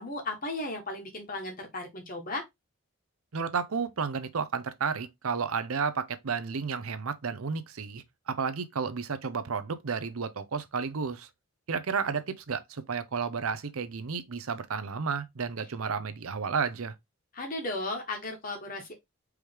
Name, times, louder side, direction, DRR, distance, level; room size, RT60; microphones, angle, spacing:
voice 1, 0.0-2.4 17.3-19.0, left 2 dB, 40° left, 1.5 m, -35 dB
voice 2, 3.3-11.3 11.7-17.0, right 5 dB, 75° right, 0.6 m, -32 dB
4.7 x 3.3 x 3.4 m
head